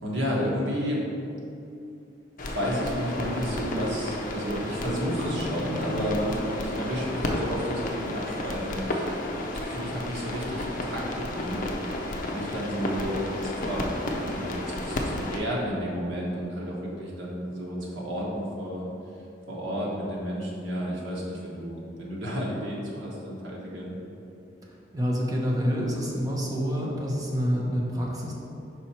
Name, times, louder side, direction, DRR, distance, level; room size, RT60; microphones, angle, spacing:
voice 1, 0.0-1.0 2.4-9.0 9.6-11.6 12.3-13.8 14.2-18.8 19.5-24.0, equal, 80° right, -4 dB, 1.4 m, -31 dB
sound 1, 2.4-15.4, left 1 dB, 45° left, 0.6 m, -32 dB
voice 2, 24.9-28.3, equal, 20° right, -3 dB, 0.9 m, -27 dB
5.5 x 4.5 x 4.4 m, 2.7 s
head